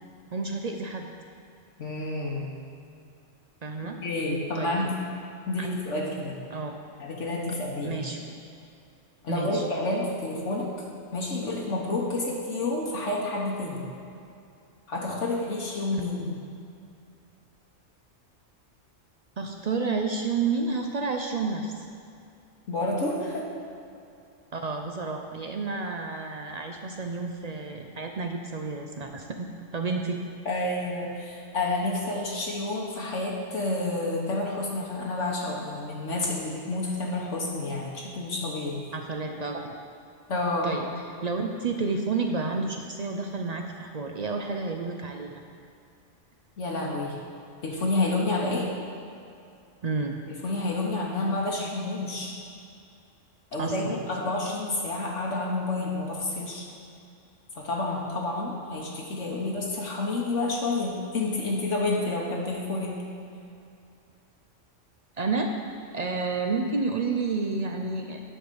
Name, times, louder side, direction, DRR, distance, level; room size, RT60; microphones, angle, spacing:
voice 1, 0.3-1.1 3.6-4.0 4.5-4.9 5.6-5.7 6.5-6.7 7.8-8.2 9.3-9.6 19.4-21.7 24.5-29.5 29.7-30.2 38.9-39.7 40.6-40.9 41.2-45.4 49.8-50.2 53.6-54.0 65.2-65.5 65.9-68.2, right 4 dB, 55° right, 3 dB, 0.4 m, -30 dB
voice 2, 1.8-2.5 4.0-5.1 5.5-6.4 7.0-8.0 9.2-10.7 11.1-13.8 14.9-16.4 22.7-23.4 30.4-38.8 40.3-40.8 46.6-47.2 47.6-48.7 50.4-52.3 53.5-56.7 57.5-62.9, left 2 dB, 75° left, -3 dB, 1.4 m, -29 dB
10.0 x 3.9 x 6.8 m, 2.5 s
omnidirectional pair, 1.3 m